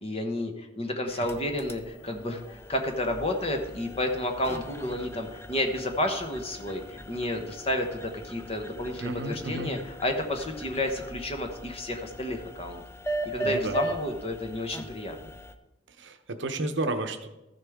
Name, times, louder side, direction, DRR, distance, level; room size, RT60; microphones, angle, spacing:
voice 1, 0.0-12.8 13.1-15.2, left 1 dB, 30° left, 5 dB, 1.0 m, -31 dB
sound 1, 1.1-15.5, right 1 dB, 10° left, 0.4 m, -39 dB
voice 2, 9.0-9.7 13.4-13.8 15.9-17.3, right 2 dB, 60° right, 7 dB, 0.8 m, -32 dB
14.0 x 6.6 x 3.6 m, 0.97 s
head